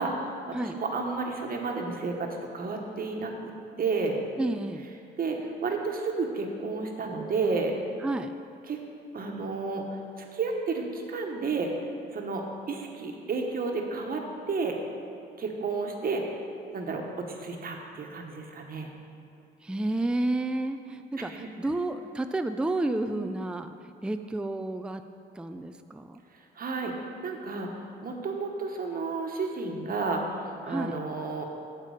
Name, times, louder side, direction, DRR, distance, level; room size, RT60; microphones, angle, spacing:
voice 1, 0.0-3.3 3.8-4.1 5.2-7.7 8.7-8.8 9.1-9.8 10.3-11.7 12.1-14.2 14.5-14.8 15.4-16.2 16.7-18.9 21.2-21.5 23.1-23.2 26.6-26.9 27.2-27.7 28.0-30.2 30.6-31.5, right 4 dB, 45° right, 2 dB, 1.3 m, -31 dB
voice 2, 4.4-4.8 8.0-8.3 19.6-23.7 24.0-25.0 25.4-26.2 30.7-31.0, right 2 dB, 5° right, 8 dB, 0.4 m, -30 dB
8.2 x 7.5 x 4.9 m, 2.5 s
cardioid pair, 90°, 20 cm